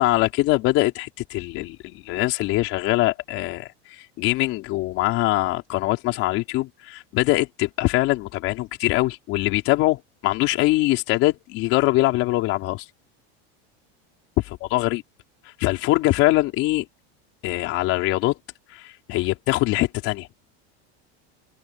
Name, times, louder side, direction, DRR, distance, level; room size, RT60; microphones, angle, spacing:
voice 1, 0.0-12.8 14.4-15.0 15.4-16.9 17.4-18.4 18.7-20.3, left 18 dB, 40° left, 4.8 m, -23 dB
open air
supercardioid pair, 170°, 33 cm